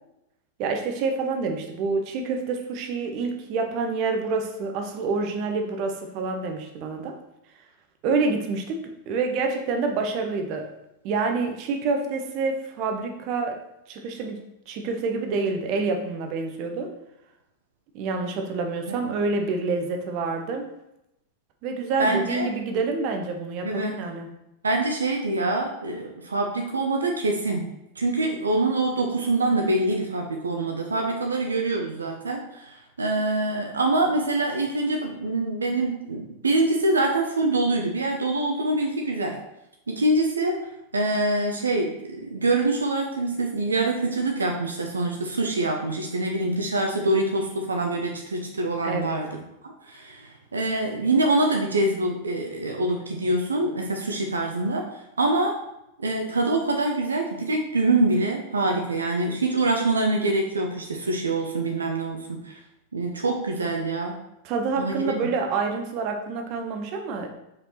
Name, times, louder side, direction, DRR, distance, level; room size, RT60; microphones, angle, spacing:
voice 1, 0.6-7.2 8.0-10.7 11.0-13.6 13.9-14.4 14.7-16.9 17.9-20.7 21.6-24.3 48.8-49.2 64.4-67.3, right 4 dB, 40° right, 4 dB, 0.9 m, -27 dB
voice 2, 22.0-22.5 23.6-24.0 24.6-27.7 28.0-39.4 39.9-40.6 40.9-49.3 49.6-55.5 56.0-62.6 62.9-64.1 64.8-65.3, right 2 dB, 75° right, 2 dB, 0.7 m, -25 dB
5.0 x 4.7 x 4.3 m, 0.86 s
figure-of-eight pair, 90°, 0 cm